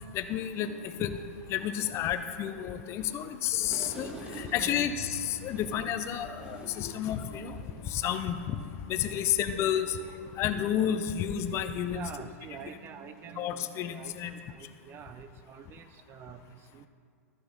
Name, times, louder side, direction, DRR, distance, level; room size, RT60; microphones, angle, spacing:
voice 1, 0.1-1.1 1.5-7.6 7.9-8.6 8.9-10.0 10.4-12.0 13.4-14.3, left 10 dB, 35° left, 10 dB, 0.5 m, -31 dB
sound 1, 0.5-14.0, left 2 dB, 10° left, 1.5 m, -54 dB
sound 2, 3.7-7.7, right 1 dB, 15° right, 1.3 m, -45 dB
voice 2, 4.6-4.9 11.9-16.9, right 8 dB, 30° right, 10 dB, 0.4 m, -46 dB
13.0 x 5.5 x 3.9 m, 2.2 s
hypercardioid pair, 115°, 8 cm